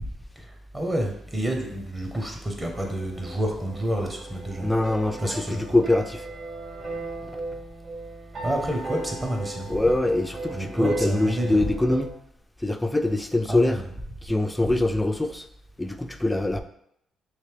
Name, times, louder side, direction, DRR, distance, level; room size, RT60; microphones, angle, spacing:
voice 1, 0.7-4.7 5.2-5.6 8.4-9.7 10.5-11.7 13.5-13.9 14.6-14.8, right 1 dB, 20° right, 2 dB, 0.7 m, -29 dB
sound 1, 2.7-12.1, right 3 dB, 55° right, 1.2 m, -37 dB
voice 2, 4.6-6.3 9.7-12.1 12.6-13.8 14.2-15.5 15.8-16.6, left 2 dB, 10° left, 7 dB, 0.3 m, -24 dB
3.1 x 2.9 x 3.3 m, 0.72 s
cardioid pair, 90°, 0 cm